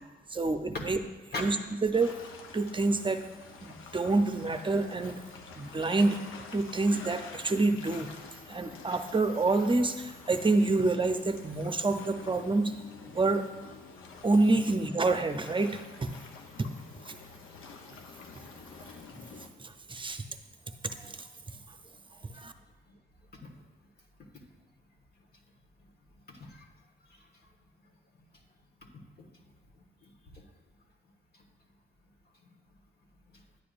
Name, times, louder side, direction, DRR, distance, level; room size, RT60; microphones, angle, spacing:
voice 1, 0.3-1.0 1.4-1.6 1.8-2.1 2.5-3.2 3.6-5.2 5.5-6.2 6.5-8.1 8.5-12.7 13.0-13.5 14.2-16.1 16.6-16.7 17.1-17.2 19.6-20.2 20.8-21.3 22.3-22.5, right 3 dB, 25° right, 8 dB, 0.7 m, -27 dB
sound 1, 1.9-19.5, left 5 dB, 85° left, 0.9 m, -48 dB
voice 2, 26.3-26.7 27.1-27.5 28.9-29.0 30.0-30.5 33.3-33.4, left 3 dB, 50° left, 0 dB, 1.5 m, -41 dB
11.0 x 8.5 x 2.6 m, 1.2 s
cardioid pair, 70°, 20 cm